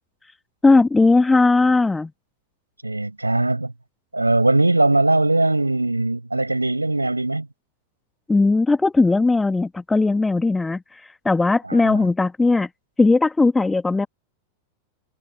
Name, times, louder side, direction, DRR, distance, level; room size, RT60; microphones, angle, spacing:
voice 1, 0.6-2.1 8.3-10.8 11.2-12.7 13.0-14.1, left 3 dB, 10° left, 1.7 m, -18 dB
voice 2, 2.8-3.7 4.1-7.5 11.6-12.0, right 2 dB, 85° right, 5.6 m, -20 dB
figure-of-eight pair, 90°, 0 cm